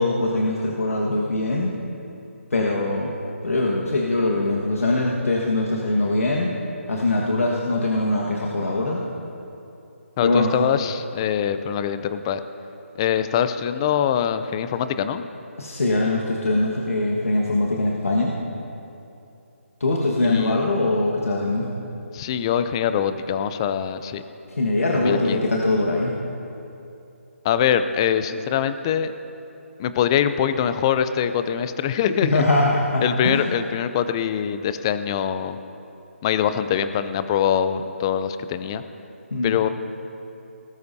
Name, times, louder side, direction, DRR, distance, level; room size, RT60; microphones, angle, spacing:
voice 1, 0.0-1.7 2.5-3.2 3.4-6.5 6.9-9.0 10.2-10.5 15.6-18.3 19.8-21.7 24.5-26.1 32.2-33.5 39.3-39.5, left 2 dB, 80° left, -3 dB, 1.6 m, -22 dB
voice 2, 10.2-12.4 13.0-15.3 20.2-20.7 22.1-24.2 24.9-25.5 27.4-29.1 29.8-32.4 33.0-35.6 36.2-38.8 39.4-39.7, left 9 dB, 20° left, 11 dB, 0.4 m, -23 dB
19.0 x 13.0 x 2.8 m, 2.8 s
figure-of-eight pair, 160°, 7 cm